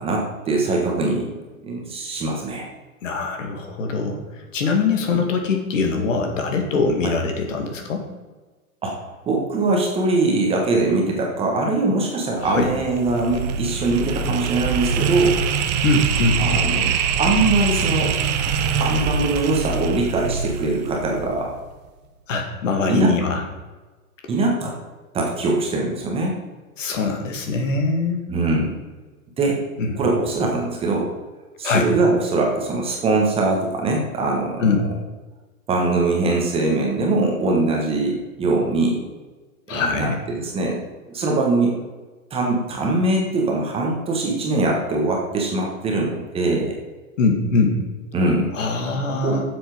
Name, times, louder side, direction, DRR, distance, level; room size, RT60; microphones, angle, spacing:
voice 1, 0.0-1.3 1.6-2.7 5.1-5.2 7.0-7.1 8.8-15.8 16.4-16.9 17.2-18.1 18.8-21.5 22.9-23.1 24.3-24.7 25.1-26.4 28.3-28.8 29.4-29.6 30.0-31.1 31.6-34.6 35.7-39.0 39.7-40.8 41.1-41.8 42.3-46.8 48.1-48.5 49.2-49.4, right 2 dB, 15° right, -1 dB, 1.4 m, -22 dB
voice 2, 3.0-4.2 4.5-8.1 12.4-12.7 15.8-16.4 22.3-23.4 26.8-28.2 29.8-29.9 31.6-31.9 34.6-34.9 39.7-40.2 47.2-47.8 48.5-49.4, left 3 dB, 60° left, 4 dB, 2.3 m, -22 dB
sound 1, 12.4-21.5, right 6 dB, 30° right, 0.7 m, -24 dB
10.0 x 7.4 x 4.9 m, 1.3 s
hypercardioid pair, 145°, 44 cm